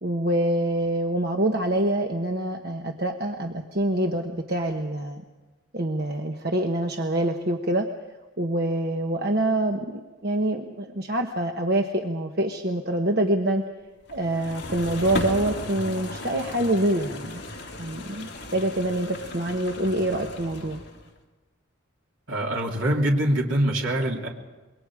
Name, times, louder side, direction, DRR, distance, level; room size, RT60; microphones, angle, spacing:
voice 1, 0.0-5.2 5.7-7.9 8.4-9.8 10.2-13.6 14.1-17.4 17.8-20.8, right 1 dB, 45° right, 3 dB, 1.2 m, -25 dB
sound 1, 14.1-21.1, left 1 dB, 55° left, 3.6 m, -36 dB
voice 2, 22.3-24.3, right 1 dB, 65° right, -1 dB, 3.3 m, -24 dB
27.0 x 23.0 x 5.0 m, 1.2 s
head